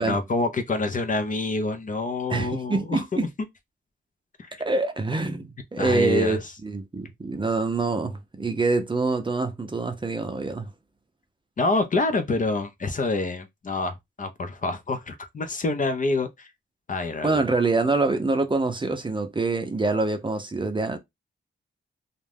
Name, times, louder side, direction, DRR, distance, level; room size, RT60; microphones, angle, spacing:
voice 1, 0.0-3.3 4.4-4.6 5.8-6.4 11.6-16.5 16.9-17.4, left 3 dB, 40° left, 0.5 m, -27 dB
voice 2, 2.3-3.2 4.6-10.7 17.2-21.0, right 3 dB, 25° right, 0.5 m, -25 dB
2.5 x 2.2 x 3.3 m
wide cardioid pair, 125°, 21 cm